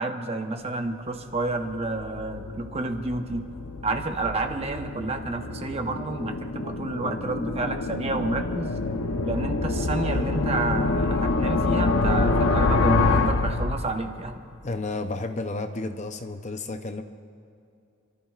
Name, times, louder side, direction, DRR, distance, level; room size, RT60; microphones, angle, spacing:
voice 1, 0.0-3.5 3.8-8.8 9.2-14.4, right 2 dB, 30° right, 5 dB, 0.9 m, -30 dB
sound 1, 1.4-14.3, left 3 dB, 80° left, 0.8 m, -26 dB
voice 2, 14.6-17.0, left 2 dB, 35° left, 7 dB, 0.6 m, -32 dB
29.5 x 14.0 x 2.4 m, 2.6 s
head